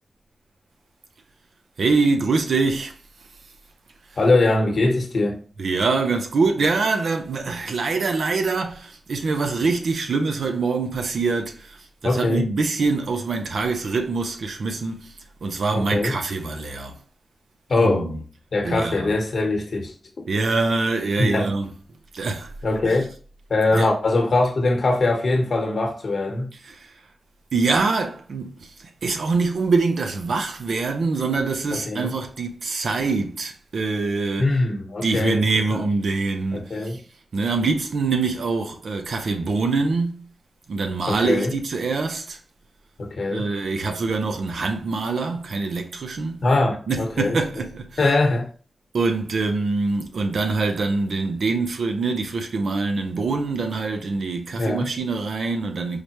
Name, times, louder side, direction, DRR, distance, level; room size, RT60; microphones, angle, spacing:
voice 1, 1.8-3.0 5.6-15.1 15.4-17.0 17.8-18.2 18.6-19.1 20.3-21.7 22.1-22.5 22.8-23.0 23.7-23.9 26.6-26.9 27.5-34.5 35.0-37.0 37.3-40.3 40.7-42.4 43.3-46.5 46.9-48.0 48.9-56.0, right 3 dB, 80° right, 0.6 m, -24 dB
voice 2, 4.2-5.4 12.0-12.5 15.7-16.2 17.7-18.1 18.5-19.9 21.2-21.5 22.6-23.1 23.5-26.5 31.7-32.1 34.4-35.8 36.5-37.0 41.0-41.5 43.0-43.5 46.4-47.4 48.0-48.5 54.5-54.9, left 2 dB, 65° left, 1.0 m, -22 dB
4.8 x 2.2 x 2.9 m
cardioid pair, 65°, 0 cm